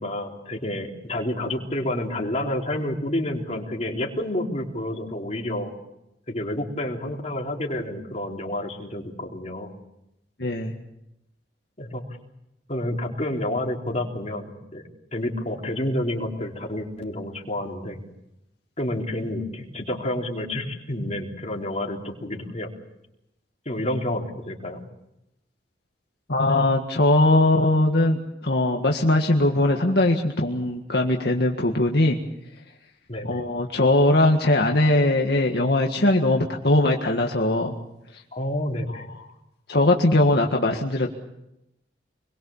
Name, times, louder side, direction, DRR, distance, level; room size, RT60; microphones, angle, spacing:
voice 1, 0.0-5.7 6.3-9.8 11.8-12.0 12.7-14.8 15.1-18.0 18.8-22.7 23.7-24.8 33.1-33.4 38.3-39.1, left 1 dB, 40° left, 0 dB, 3.9 m, -29 dB
voice 2, 10.4-10.7 26.3-32.2 33.2-37.7 39.7-41.1, left 1 dB, 65° left, 1 dB, 1.8 m, -20 dB
26.5 x 22.0 x 7.3 m, 0.87 s
head